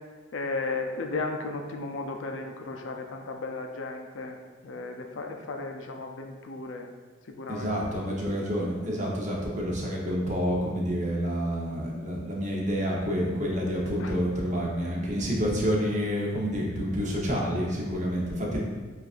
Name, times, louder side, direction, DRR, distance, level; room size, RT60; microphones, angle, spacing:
voice 1, 0.3-4.4 4.6-6.9 7.3-7.8 14.0-14.1, left 3 dB, 70° left, 4 dB, 0.5 m, -35 dB
voice 2, 7.5-18.6, equal, 35° right, -3 dB, 0.9 m, -28 dB
7.4 x 2.5 x 2.5 m, 1.3 s
head